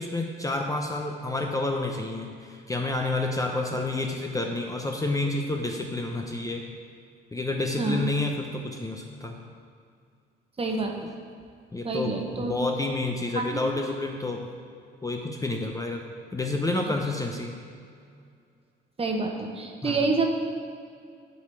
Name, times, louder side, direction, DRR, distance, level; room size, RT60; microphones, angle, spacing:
voice 1, 0.0-6.6 7.3-9.4 11.7-14.5 15.0-16.0 16.3-17.6 19.8-20.1, left 2 dB, 15° left, 2 dB, 0.6 m, -29 dB
voice 2, 7.8-8.1 10.6-11.1 11.8-12.5 13.3-13.6 19.0-20.2, right 3 dB, 30° right, 2 dB, 1.1 m, -28 dB
9.5 x 4.9 x 4.5 m, 2.3 s
cardioid pair, 90°, 20 cm